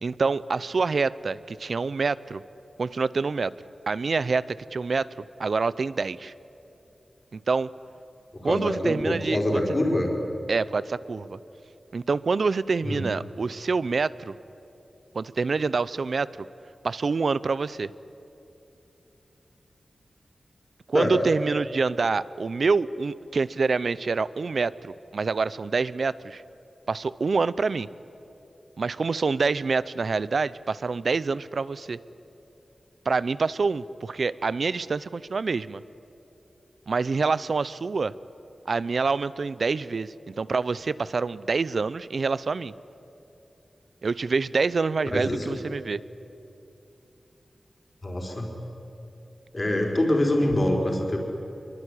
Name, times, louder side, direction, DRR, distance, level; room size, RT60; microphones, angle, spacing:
voice 1, 0.0-2.4 2.8-3.5 3.9-4.4 4.7-5.1 5.4-6.3 7.3-7.7 8.4-9.6 10.5-11.4 11.9-14.3 15.1-16.5 16.8-17.9 20.9-26.4 26.9-27.9 28.8-32.0 33.1-35.8 36.9-38.1 38.7-42.7 44.0-46.0, right 4 dB, 60° right, 18 dB, 0.6 m, -26 dB
voice 2, 8.3-10.1 12.8-13.0 20.9-21.2 45.1-45.6 48.0-48.5 49.5-51.2, left 1 dB, 30° left, 1 dB, 4.7 m, -25 dB
25.0 x 23.0 x 10.0 m, 3.0 s
wide cardioid pair, 115°, 0 cm